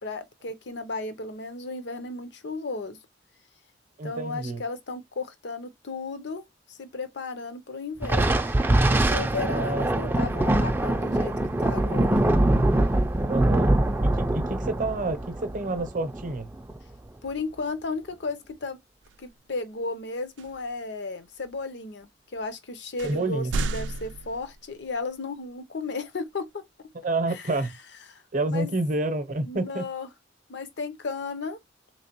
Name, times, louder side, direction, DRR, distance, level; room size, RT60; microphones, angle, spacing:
voice 1, 0.0-3.0 4.0-8.4 8.9-11.3 11.6-12.2 17.2-18.8 19.2-26.6 27.3-27.6 28.1-28.2 28.5-28.7 29.4-30.1 30.5-31.6, left 3 dB, 65° left, 0.7 m, -34 dB
voice 2, 4.0-4.6 9.4-10.2 13.3-13.7 14.0-16.5 23.0-23.5 27.0-27.8 28.3-29.8, right 2 dB, 45° right, 0.7 m, -29 dB
Thunder, 8.0-16.8, right 1 dB, 10° right, 0.4 m, -23 dB
sound 1, 19.0-19.3 20.4-20.8 21.4-21.5 22.4-22.5 23.0-24.9, right 3 dB, 85° right, 0.4 m, -33 dB
3.7 x 3.0 x 2.9 m
head